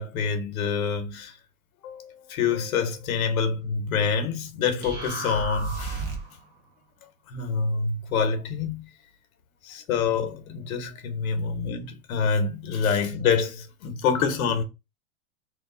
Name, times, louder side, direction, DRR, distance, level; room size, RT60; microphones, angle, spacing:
voice 1, 0.0-1.4 1.8-6.1 7.3-8.9 9.6-14.6, left 5 dB, 85° left, 1.0 m, -26 dB
sound 1, 4.8-6.4, right 3 dB, 20° right, 0.6 m, -32 dB
3.1 x 2.3 x 3.5 m
supercardioid pair, 165°, 41 cm